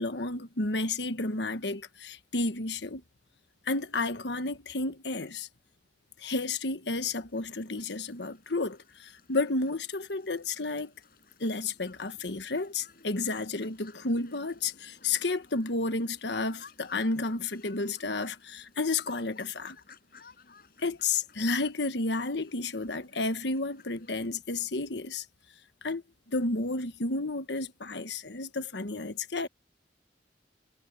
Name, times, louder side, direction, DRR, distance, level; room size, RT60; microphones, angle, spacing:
voice 1, 0.0-3.0 3.7-5.5 6.2-10.9 11.4-19.8 20.8-25.2 25.8-26.0 26.3-29.5, left 3 dB, 70° left, 1.3 m, -31 dB
sound 1, 7.3-24.3, left 4 dB, 55° left, 6.7 m, -57 dB
head